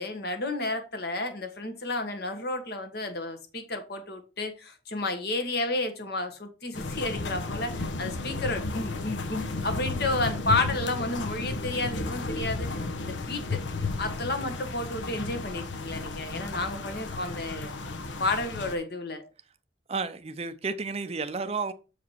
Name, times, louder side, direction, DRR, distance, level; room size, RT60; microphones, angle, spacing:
voice 1, 0.0-13.6 14.0-17.7 18.2-19.2, left 2 dB, 55° left, 1.5 m, -31 dB
sound 1, 6.7-18.7, left 3 dB, 85° left, 0.9 m, -33 dB
voice 2, 19.9-21.7, right 4 dB, 35° right, 0.5 m, -32 dB
7.1 x 4.9 x 4.5 m
head